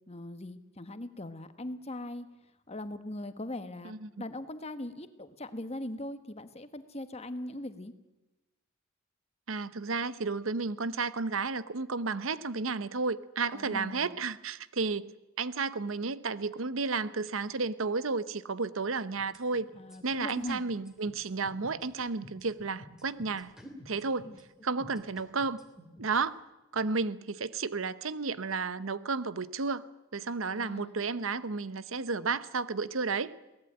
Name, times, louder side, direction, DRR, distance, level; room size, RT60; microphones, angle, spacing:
voice 1, 0.1-2.2 2.7-3.9 4.2-7.9 13.5-14.1 19.7-20.6 24.2-24.4 30.5-31.0, left 1 dB, 30° left, 10 dB, 1.4 m, -40 dB
voice 2, 3.8-4.2 9.5-15.1 15.4-19.7 20.0-23.5 23.9-24.3 24.6-25.6 26.0-26.4 26.7-29.8 30.1-33.3, right 4 dB, 90° right, 15 dB, 0.9 m, -32 dB
sound 1, 19.0-26.2, equal, 5° right, 3.3 m, -51 dB
23.0 x 18.5 x 8.9 m, 1.0 s
head